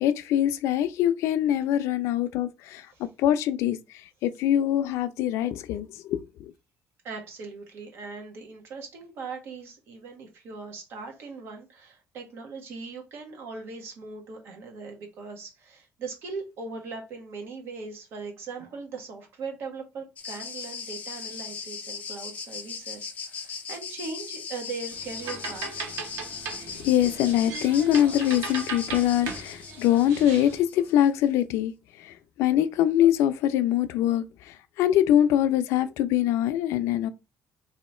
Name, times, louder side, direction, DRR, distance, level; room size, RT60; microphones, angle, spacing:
voice 1, 0.0-2.8 3.2-3.8 4.2-6.2 26.8-31.7 32.4-34.2 34.8-37.1, left 11 dB, 85° left, 0.4 m, -23 dB
voice 2, 7.0-26.0, right 4 dB, 55° right, 1.1 m, -39 dB
sound 1, 20.2-31.1, left 6 dB, 30° left, 0.6 m, -39 dB
sound 2, 24.9-30.6, right 4 dB, 85° right, 1.1 m, -38 dB
3.0 x 2.8 x 4.2 m
cardioid pair, 165°, 5 cm